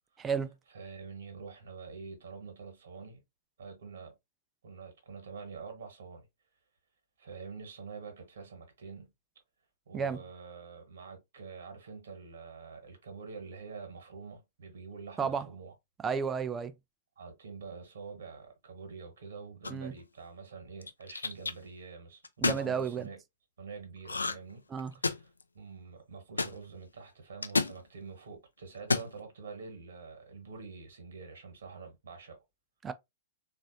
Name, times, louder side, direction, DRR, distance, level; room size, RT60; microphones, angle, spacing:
voice 1, 0.2-0.5 9.9-10.2 15.2-15.5 16.0-16.7 19.7-19.9 22.4-23.1 24.7-24.9 32.8-32.9, right 6 dB, 15° right, 0.4 m, -32 dB
voice 2, 0.7-3.2 3.6-4.1 4.6-6.3 7.2-9.1 9.9-15.7 17.2-23.2 23.6-24.7 24.9-25.3 25.5-32.4, right 5 dB, 60° right, 1.3 m, -46 dB
sound 1, 19.6-20.0 20.8-21.5 22.2-22.7 24.0-24.5 24.8-25.4 26.4-26.5 27.4-27.8 28.7-29.1, left 3 dB, 75° left, 0.4 m, -30 dB
3.9 x 2.5 x 2.6 m
figure-of-eight pair, 105°, 0 cm